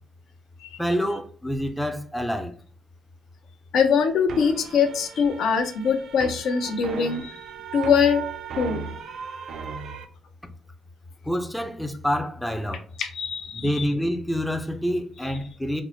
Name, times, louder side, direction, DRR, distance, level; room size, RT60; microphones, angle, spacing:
voice 1, 0.8-2.5 11.3-12.8 13.5-15.8, equal, ahead, 0.4 m, -27 dB
voice 2, 3.7-7.4 7.7-8.2 8.6-8.9 13.0-13.9, left 6 dB, 75° left, 0.6 m, -23 dB
sound 1, 4.3-10.0, right 6 dB, 60° right, 0.4 m, -37 dB
4.2 x 2.0 x 2.9 m
cardioid pair, 105°, 0 cm